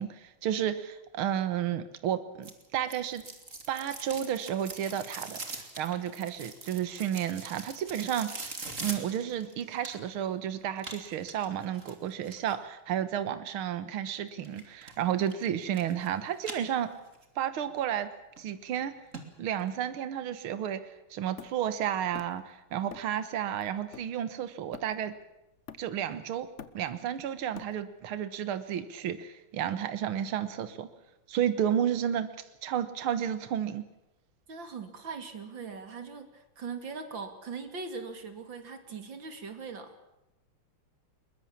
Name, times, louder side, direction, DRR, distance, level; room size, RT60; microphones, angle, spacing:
voice 1, 0.0-3.2 3.7-16.9 17.4-18.1 18.4-18.9 19.4-25.1 25.8-26.5 26.7-30.9 31.3-32.3 32.6-33.8, right 10 dB, 75° right, 12 dB, 2.1 m, -32 dB
sound 1, 2.4-10.2 10.8-12.5 14.4-14.9 15.3-16.1 16.4-17.2 17.6-17.7 18.4-18.5 18.8-18.9 19.1-19.2 19.6-19.7, right 3 dB, 35° right, 3.3 m, -42 dB
Hammer, 21.4-22.5 22.9-23.2 23.6-25.2 25.7-26.1 26.4-28.1, left 7 dB, 45° left, 1.0 m, -48 dB
voice 2, 34.5-40.0, right 5 dB, 60° right, 8 dB, 3.3 m, -40 dB
22.5 x 21.5 x 7.3 m, 0.94 s
omnidirectional pair, 2.4 m